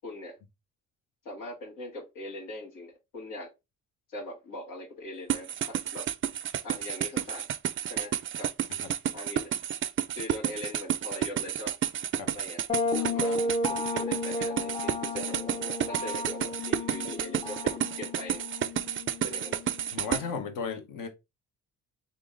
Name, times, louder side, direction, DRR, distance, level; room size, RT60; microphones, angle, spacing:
voice 1, 0.0-0.4 1.3-3.5 4.1-6.1 6.6-7.5 7.9-8.5 9.1-9.5 10.2-11.8 12.3-12.6 13.0-18.4 19.2-19.6, left 2 dB, 90° left, 1.9 m, -41 dB
sound 1, 5.3-20.2, right 10 dB, 40° right, 0.4 m, -31 dB
sound 2, 12.7-20.3, left 2 dB, 15° left, 0.5 m, -33 dB
voice 2, 19.9-21.1, left 5 dB, 70° left, 1.1 m, -35 dB
3.7 x 2.7 x 3.5 m
supercardioid pair, 75°, 33 cm